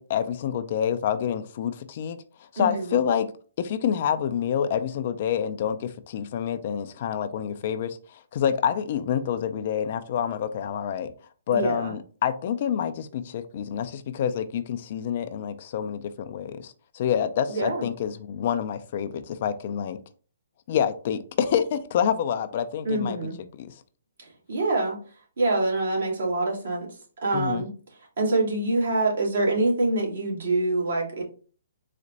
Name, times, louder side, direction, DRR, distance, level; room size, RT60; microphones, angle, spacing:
voice 1, 0.0-3.3 3.6-11.1 11.5-20.0 20.7-23.2 23.6-23.7 27.3-27.6, left 8 dB, 50° left, 0.4 m, -27 dB
voice 2, 2.6-3.0 11.5-11.9 17.5-17.9 22.8-23.4 24.2-25.0 25.4-26.9 27.2-27.7 28.2-31.2, right 2 dB, 70° right, 2.0 m, -25 dB
4.2 x 2.5 x 3.9 m
hypercardioid pair, 135°, 0 cm